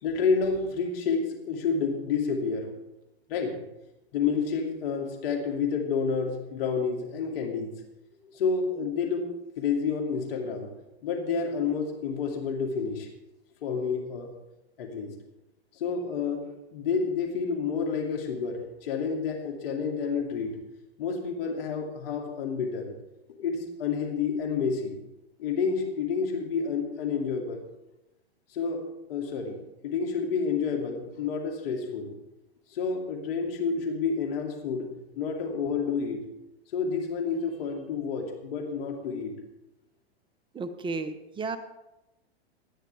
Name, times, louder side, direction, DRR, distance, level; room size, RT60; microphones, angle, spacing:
voice 1, 0.0-2.7 3.3-3.6 4.1-7.7 8.3-9.3 9.6-10.7 11.0-13.1 13.6-14.3 14.8-15.1 15.7-20.6 21.0-23.0 23.4-25.0 25.4-27.6 28.5-29.6 29.8-32.1 32.7-34.9 35.2-36.2 36.7-39.3, left 5 dB, 65° left, 3 dB, 2.6 m, -29 dB
voice 2, 40.5-41.6, right 3 dB, 15° right, 10 dB, 0.8 m, -33 dB
18.5 x 10.5 x 3.4 m, 0.93 s
hypercardioid pair, 125°, 32 cm